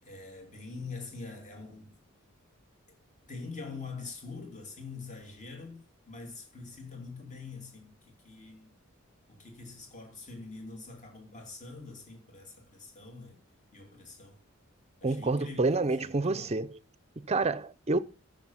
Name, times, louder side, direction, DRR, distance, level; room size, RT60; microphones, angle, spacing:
voice 1, 0.0-2.0 2.9-3.0 3.3-8.7 9.3-13.4 13.7-14.4 15.0-16.6, left 4 dB, 35° left, 2.9 m, -44 dB
voice 2, 15.0-16.7 17.3-18.0, right 3 dB, 30° right, 0.6 m, -28 dB
14.5 x 6.6 x 5.8 m
head